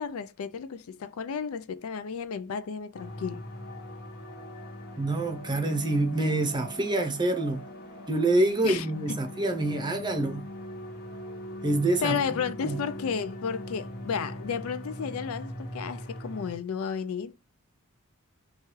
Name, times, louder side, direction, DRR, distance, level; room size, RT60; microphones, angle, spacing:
voice 1, 0.0-3.5 8.6-9.2 12.0-17.3, left 6 dB, 70° left, 0.4 m, -33 dB
sound 1, 2.9-16.6, left 1 dB, 45° left, 1.0 m, -41 dB
voice 2, 5.0-7.6 8.1-10.5 11.6-12.2 12.6-12.8, right 2 dB, 20° right, 0.6 m, -26 dB
3.1 x 2.4 x 4.3 m
head